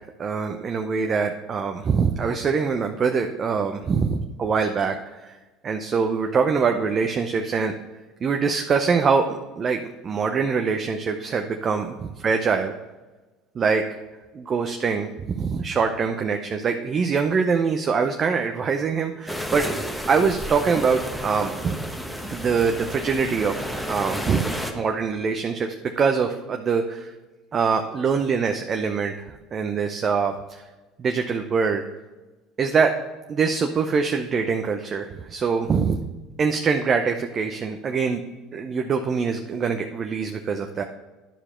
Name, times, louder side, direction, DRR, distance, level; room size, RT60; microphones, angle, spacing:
voice 1, 0.2-5.4 5.6-7.7 8.2-12.7 13.5-13.8 14.3-21.8 22.3-24.4 24.7-27.1 27.5-30.7 31.0-31.8 32.6-32.9 33.3-36.0 36.4-38.2 38.5-40.8, right 5 dB, 40° right, 4 dB, 0.7 m, -24 dB
sound 1, 19.3-24.7, equal, ahead, 1.2 m, -31 dB
11.0 x 4.8 x 4.4 m, 1.2 s
supercardioid pair, 85°, 0 cm